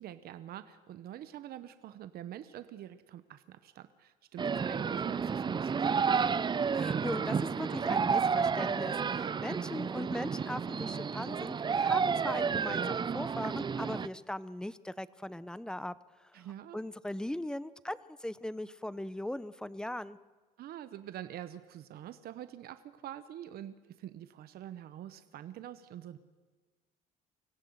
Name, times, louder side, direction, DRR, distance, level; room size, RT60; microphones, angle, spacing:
voice 1, 0.0-6.2 9.2-9.3 16.3-16.8 20.6-26.2, right 11 dB, 65° right, 11 dB, 1.0 m, -46 dB
sound 1, 4.4-14.1, right 6 dB, 25° right, 0.6 m, -31 dB
voice 2, 6.7-15.9 16.7-20.2, left 1 dB, 5° left, 17 dB, 0.7 m, -39 dB
25.5 x 16.0 x 8.0 m, 1.3 s
cardioid pair, 110°, 17 cm